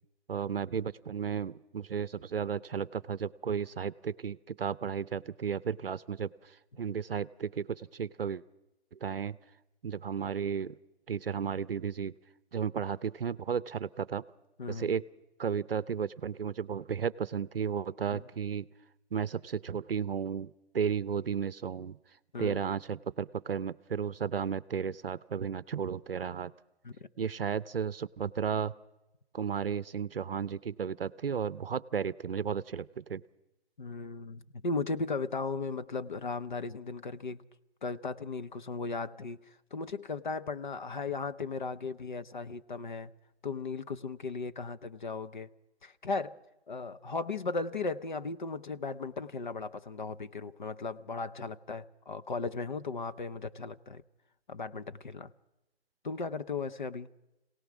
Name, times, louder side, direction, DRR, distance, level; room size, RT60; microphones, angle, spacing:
voice 1, 0.3-8.4 8.9-9.4 9.8-10.8 11.1-12.1 12.5-14.2 14.7-15.0 15.4-18.6 19.1-22.0 22.4-26.5 27.2-28.7 29.3-33.2, right 7 dB, 60° right, 0.6 m, -34 dB
voice 2, 33.8-37.5 37.8-39.4 39.7-43.1 43.4-45.5 45.8-46.4 46.7-54.0 54.5-55.3 56.0-57.1, left 4 dB, 45° left, 0.8 m, -36 dB
23.5 x 18.0 x 6.2 m
hypercardioid pair, 170°, 32 cm